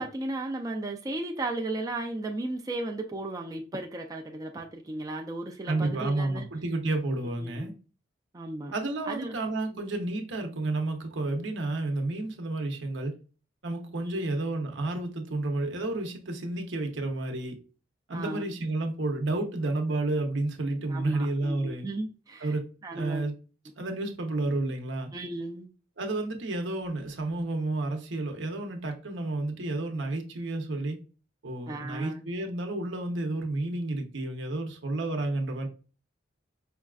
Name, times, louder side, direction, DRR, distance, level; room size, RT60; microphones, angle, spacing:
voice 1, 0.0-6.5 7.4-7.7 8.3-8.7 9.1-9.4 9.7-9.9 14.0-14.3 18.1-18.4 20.9-22.6 22.8-23.2 25.1-25.7 31.7-32.3, right 2 dB, 20° right, 0.3 m, -35 dB
voice 2, 5.7-7.7 8.7-13.1 13.6-17.6 18.1-21.9 22.4-23.3 23.8-25.1 26.0-31.0 31.4-35.7, right 2 dB, 75° right, 0.8 m, -31 dB
5.2 x 2.3 x 2.3 m
head